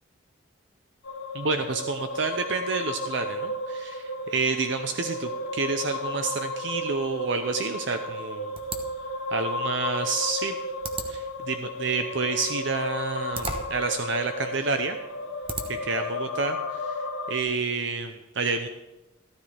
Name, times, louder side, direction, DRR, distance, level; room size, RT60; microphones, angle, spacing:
sound 1, 1.0-17.4, left 2 dB, 70° left, 1.1 m, -33 dB
voice 1, 1.3-8.6 9.3-10.6 11.1-15.0 15.7-18.7, right 4 dB, 60° right, 7 dB, 0.6 m, -29 dB
sound 2, 8.6-16.0, right 3 dB, 30° right, 1.0 m, -40 dB
14.5 x 13.0 x 3.4 m, 1.0 s
head